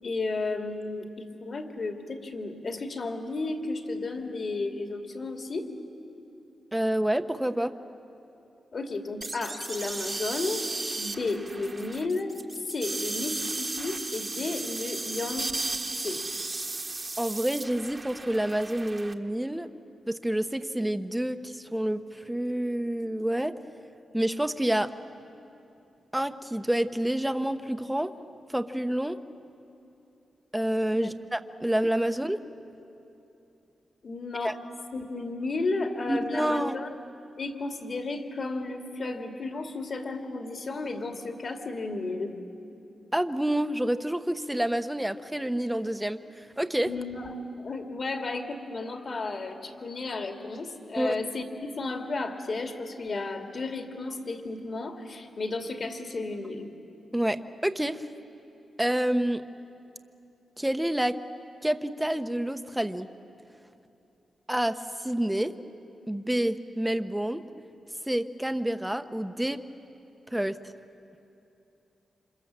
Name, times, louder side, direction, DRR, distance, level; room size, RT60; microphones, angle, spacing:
voice 1, 0.0-5.7 8.7-10.7 10.9-12.3 12.6-15.5 16.0-16.2 30.9-31.1 34.0-34.6 34.9-36.9 37.4-42.3 46.8-56.7, left 3 dB, 50° left, 4 dB, 2.5 m, -33 dB
voice 2, 6.7-7.7 17.2-19.7 20.1-23.5 24.1-24.9 26.1-28.1 28.5-29.2 30.5-32.4 34.4-34.5 36.1-36.8 43.1-46.9 51.0-51.2 57.1-58.0 58.8-59.4 60.6-61.2 61.6-63.1 64.5-65.5 66.1-67.4 68.1-69.6 70.3-70.6, right 1 dB, 5° right, 10 dB, 1.0 m, -28 dB
sound 1, 9.2-19.1, right 3 dB, 30° right, 1.4 m, -35 dB
28.0 x 26.5 x 7.5 m, 2.8 s
cardioid pair, 90°, 0 cm